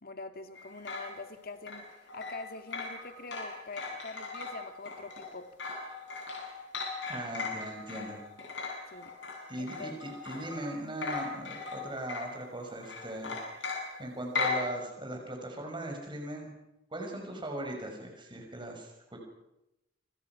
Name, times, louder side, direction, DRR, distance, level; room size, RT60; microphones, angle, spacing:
voice 1, 0.0-5.5 8.9-9.1 9.6-9.9, left 3 dB, 55° left, 8 dB, 2.3 m, -44 dB
sound 1, 0.6-10.7 11.0-12.5 12.8-14.7, left 4 dB, 80° left, 7.5 m, -38 dB
voice 2, 7.1-8.2 9.5-13.4 14.0-16.5 16.9-19.2, right 1 dB, 25° right, 2 dB, 6.0 m, -39 dB
28.0 x 25.5 x 6.1 m, 0.88 s
head